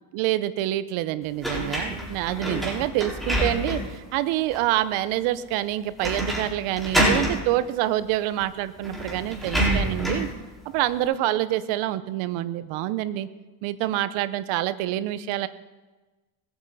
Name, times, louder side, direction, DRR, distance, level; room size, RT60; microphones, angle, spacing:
voice 1, 0.1-10.3 10.7-13.3 13.6-15.5, right 14 dB, 85° right, 15 dB, 0.9 m, -26 dB
sound 1, 1.4-4.0 4.5-4.6 6.0-6.5 6.7-7.4 8.4-8.5 8.8-10.3, right 1 dB, ahead, 4.5 m, -26 dB
20.5 x 8.9 x 4.1 m, 1.2 s
supercardioid pair, 90°, 47 cm